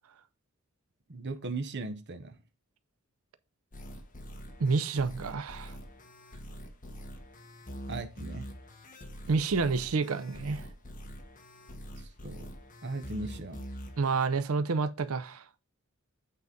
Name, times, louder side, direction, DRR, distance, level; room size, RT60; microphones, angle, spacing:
voice 1, 1.1-2.4 7.9-8.5 11.9-12.5 12.8-13.6, right 3 dB, 55° right, 0.9 m, -38 dB
sound 1, 3.7-14.3, equal, 40° left, 1.4 m, -45 dB
voice 2, 4.6-5.8 9.3-10.7 14.0-15.4, right 4 dB, 80° right, 0.6 m, -29 dB
8.5 x 4.0 x 5.2 m
head